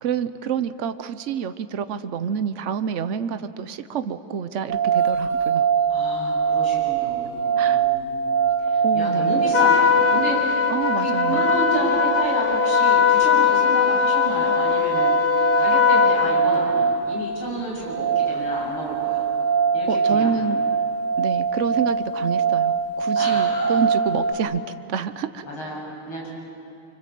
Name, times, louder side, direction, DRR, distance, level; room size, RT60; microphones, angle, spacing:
voice 1, 0.0-5.7 7.6-7.9 8.8-9.4 10.7-11.4 19.9-20.6 21.2-24.6 24.9-25.5, right 7 dB, 65° right, 11 dB, 0.7 m, -28 dB
sound 1, 4.7-24.3, right 6 dB, 45° right, 1.2 m, -23 dB
voice 2, 5.9-8.3 8.7-10.6 11.0-19.2 19.7-20.4 23.2-23.8 25.4-26.3, right 1 dB, 85° left, -4 dB, 8.6 m, -31 dB
Trumpet, 9.5-16.4, left 8 dB, 55° left, 0.6 m, -20 dB
30.0 x 25.5 x 7.6 m, 2.5 s
omnidirectional pair, 2.3 m